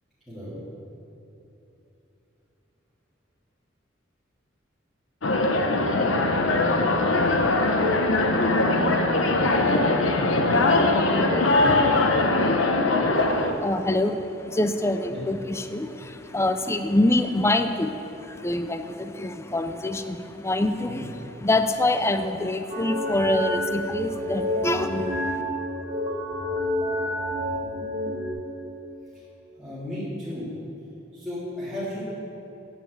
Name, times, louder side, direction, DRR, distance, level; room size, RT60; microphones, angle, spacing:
voice 1, 0.3-0.6 15.1-15.2 20.8-21.1 29.6-30.5 31.1-32.0, left 1 dB, ahead, -15 dB, 3.2 m, -34 dB
sound 1, 5.2-13.5, left 2 dB, 85° left, 1.0 m, -21 dB
voice 2, 13.2-25.4, left 1 dB, 15° left, 8 dB, 0.4 m, -26 dB
sound 2, 22.7-28.3, left 1 dB, 20° right, 2.6 m, -29 dB
9.2 x 9.0 x 8.1 m, 3.0 s
head